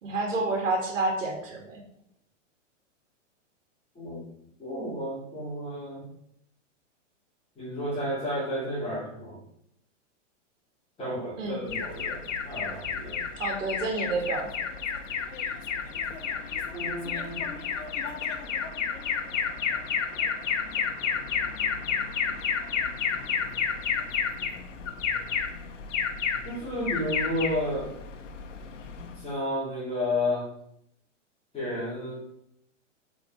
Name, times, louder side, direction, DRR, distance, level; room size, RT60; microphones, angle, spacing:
voice 1, 0.0-1.8 11.4-11.6 13.4-14.5, right 3 dB, 85° right, 0 dB, 2.6 m, -29 dB
voice 2, 4.6-6.1 7.6-9.4 11.0-13.2 16.7-17.6 26.4-27.9 29.1-30.5 31.5-32.2, left 1 dB, 15° left, -8 dB, 3.6 m, -32 dB
Alarm, 11.7-29.3, left 6 dB, 75° left, 1.3 m, -31 dB
8.3 x 4.9 x 4.8 m, 0.73 s
hypercardioid pair, 140°, 37 cm